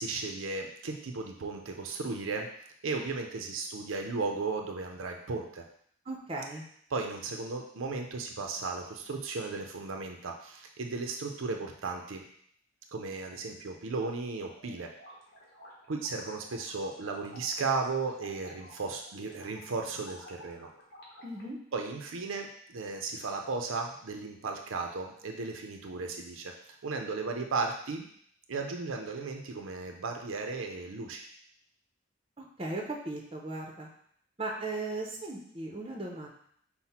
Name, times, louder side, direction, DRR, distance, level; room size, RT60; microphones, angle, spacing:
voice 1, 0.0-2.5 2.8-5.6 6.9-12.2 12.9-14.9 15.9-20.7 21.7-26.5 26.8-28.1 28.5-31.3, right 4 dB, 75° right, 3 dB, 0.5 m, -35 dB
voice 2, 6.1-6.6 21.2-21.6 32.4-33.9 34.4-36.3, right 2 dB, 25° right, -1 dB, 0.7 m, -37 dB
sound 1, 14.4-21.4, equal, 50° left, 1.1 m, -53 dB
5.7 x 2.1 x 4.2 m, 0.64 s
head